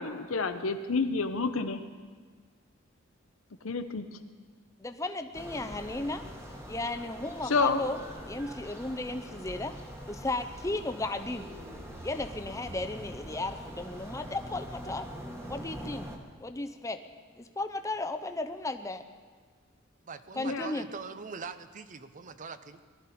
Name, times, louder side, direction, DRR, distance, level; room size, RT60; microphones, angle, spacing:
voice 1, 0.0-1.8 3.6-4.2 7.4-7.8 20.4-20.8, left 4 dB, 90° left, 9 dB, 0.9 m, -29 dB
voice 2, 4.8-6.2 6.7-8.0 8.3-9.7 10.1-11.5 12.0-15.1 15.5-16.1 16.4-17.0 17.4-19.0 20.4-20.9, left 2 dB, 15° left, 8 dB, 0.6 m, -35 dB
sound 1, 5.3-16.2, equal, 15° right, 1.3 m, -43 dB
voice 3, 20.0-22.8, right 5 dB, 40° right, 12 dB, 0.6 m, -42 dB
19.0 x 12.5 x 4.3 m, 1.5 s
head